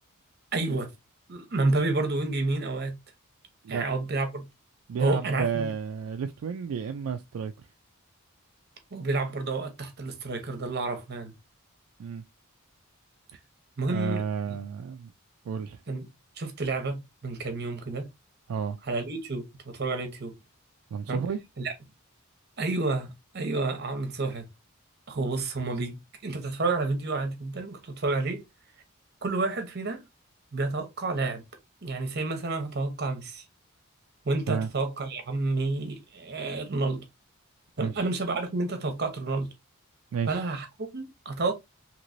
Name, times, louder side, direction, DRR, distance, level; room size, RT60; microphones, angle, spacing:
voice 1, 0.5-0.9 1.3-3.0 3.7-4.4 5.0-5.7 8.9-11.3 13.8-14.2 15.9-16.1 16.4-18.1 18.9-19.5 19.7-20.4 21.1-21.2 21.6-21.7 22.6-24.5 25.1-26.0 26.2-28.4 29.2-30.0 30.5-31.4 31.8-33.4 34.2-37.0 37.8-39.5 40.3-40.7 40.9-41.5, right 3 dB, 50° right, 0.8 m, -29 dB
voice 2, 4.9-7.5 12.0-12.2 13.9-15.1 15.5-15.8 18.5-18.8 20.9-21.4 34.5-34.7 37.8-38.0 40.1-40.4, right 6 dB, 75° right, 0.3 m, -31 dB
3.0 x 2.9 x 2.6 m
head